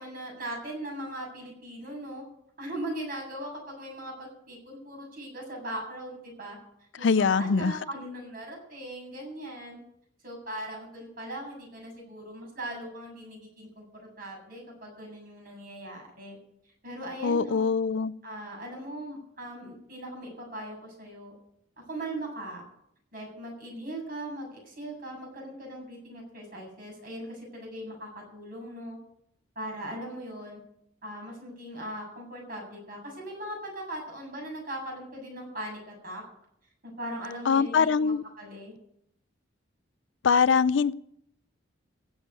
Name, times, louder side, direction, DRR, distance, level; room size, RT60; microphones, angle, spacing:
voice 1, 0.0-2.2 2.6-6.6 7.0-9.8 10.2-16.4 16.8-17.7 18.2-21.3 21.9-22.6 23.1-29.0 29.6-30.6 31.0-36.2 36.8-38.7, right 1 dB, 45° right, 0 dB, 7.6 m, -39 dB
voice 2, 7.0-7.8 17.2-18.1 37.5-38.2 40.2-40.9, left 5 dB, 65° left, 17 dB, 0.5 m, -23 dB
16.0 x 7.2 x 9.5 m, 0.72 s
head